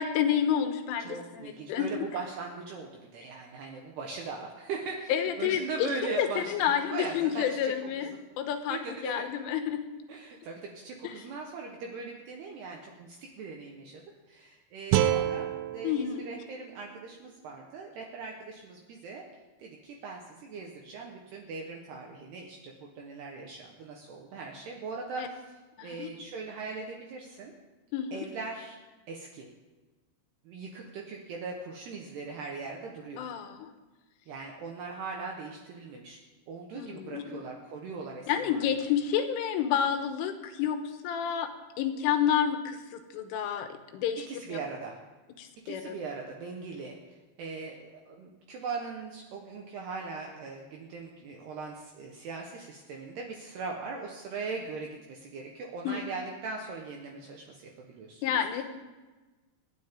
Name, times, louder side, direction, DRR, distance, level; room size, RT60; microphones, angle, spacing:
voice 1, 0.0-1.9 5.1-5.9 6.2-8.1 8.4-9.8 11.0-11.1 15.8-16.2 25.2-25.3 25.8-26.1 27.9-28.2 33.2-33.7 36.8-37.4 38.3-40.8 41.0-41.5 41.8-44.6 45.4-46.0 55.9-56.0 58.2-58.6, left 9 dB, 80° left, 7 dB, 3.5 m, -29 dB
voice 2, 1.0-6.5 6.8-7.7 8.0-8.1 8.7-9.2 10.1-14.0 14.3-19.3 19.6-27.5 28.1-28.8 29.1-29.5 30.5-33.2 34.3-36.2 36.5-38.8 44.3-45.0 45.7-58.6, right 4 dB, 70° right, 0 dB, 2.8 m, -40 dB
sound 1, 14.9-18.0, right 12 dB, 85° right, 3.4 m, -30 dB
26.5 x 10.0 x 3.7 m, 1.2 s
omnidirectional pair, 5.8 m